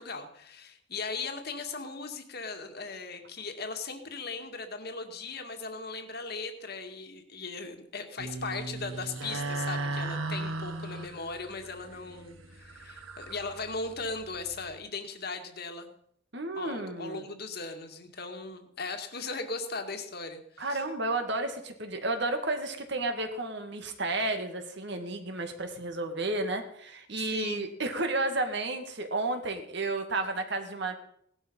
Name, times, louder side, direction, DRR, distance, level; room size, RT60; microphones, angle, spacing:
voice 1, 0.0-15.9 16.6-20.8 27.2-27.7, left 4 dB, 50° left, 6 dB, 2.1 m, -38 dB
sound 1, 8.2-14.7, right 2 dB, 75° right, 1.6 m, -37 dB
voice 2, 16.3-17.2 20.6-31.0, right 2 dB, 55° right, 6 dB, 2.2 m, -32 dB
18.0 x 12.5 x 5.6 m, 0.68 s
head